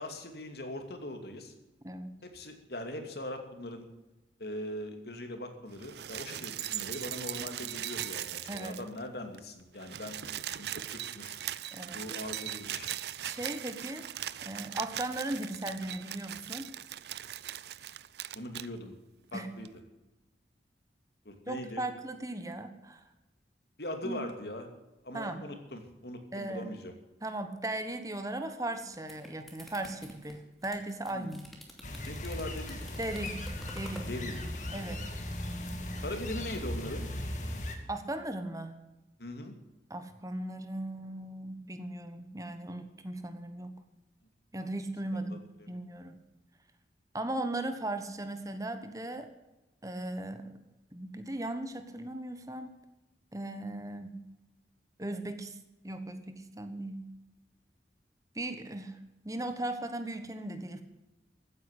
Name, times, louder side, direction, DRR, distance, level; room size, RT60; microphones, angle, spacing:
voice 1, 0.0-1.5 2.2-3.8 4.4-10.2 10.5-11.4 11.9-12.9 18.3-18.9 19.3-19.7 21.2-21.8 23.8-24.7 25.0-26.9 31.1-31.3 32.0-32.8 34.1-34.4 34.8-35.0 36.0-37.0 39.2-39.5 45.2-45.7, left 1 dB, 65° left, 6 dB, 2.6 m, -41 dB
sound 1, 5.7-9.1 9.3-9.4 9.7-18.7 19.6-19.7, right 12 dB, 70° right, 0.5 m, -39 dB
voice 2, 13.2-14.1 14.4-16.7 19.3-19.5 21.5-23.0 24.0-24.2 25.1-25.4 26.3-26.7 27.2-31.5 33.0-33.4 33.7-34.1 34.7-35.0 37.9-38.7 39.9-43.7 44.5-46.2 47.1-49.3 49.8-50.6 50.9-52.7 53.3-54.2 55.0-55.6 55.8-57.1 58.3-59.0 59.2-60.8, right 1 dB, 20° right, 8 dB, 1.2 m, -37 dB
sound 2, 28.7-34.1, equal, ahead, 2.6 m, -50 dB
sound 3, 31.8-37.8, left 1 dB, 45° left, 2.3 m, -38 dB
15.5 x 9.5 x 8.3 m, 1.0 s
head